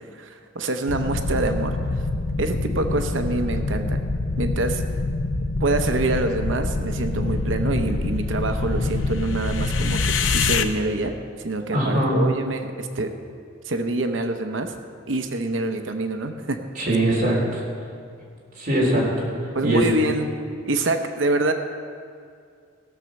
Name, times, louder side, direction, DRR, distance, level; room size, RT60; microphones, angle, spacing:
voice 1, 0.2-1.8 2.4-4.0 4.4-4.8 5.6-11.1 11.4-13.1 13.6-14.7 15.1-16.6 16.9-17.0 19.5-20.3 20.7-21.5, right 2 dB, 75° right, 6 dB, 0.8 m, -26 dB
sound 1, 0.9-10.6, left 3 dB, 70° left, 0.7 m, -25 dB
voice 2, 11.7-12.2 16.4-16.5 16.8-17.6 18.6-19.3 19.6-19.8, right 1 dB, 45° right, -4 dB, 3.5 m, -21 dB
17.0 x 7.0 x 6.4 m, 2.3 s
head